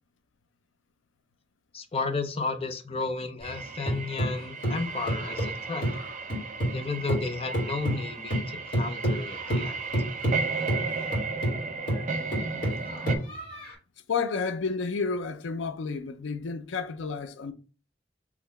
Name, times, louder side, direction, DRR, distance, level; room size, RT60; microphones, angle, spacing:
voice 1, 1.7-5.9 6.7-9.8, left 3 dB, 30° left, 0.6 m, -33 dB
sound 1, 3.4-6.8 7.1-13.7, equal, 50° left, 1.9 m, -30 dB
sound 2, 3.4-13.2, right 4 dB, 40° right, 0.6 m, -35 dB
voice 2, 14.1-17.5, left 4 dB, 85° left, 0.5 m, -31 dB
4.1 x 3.0 x 4.1 m
head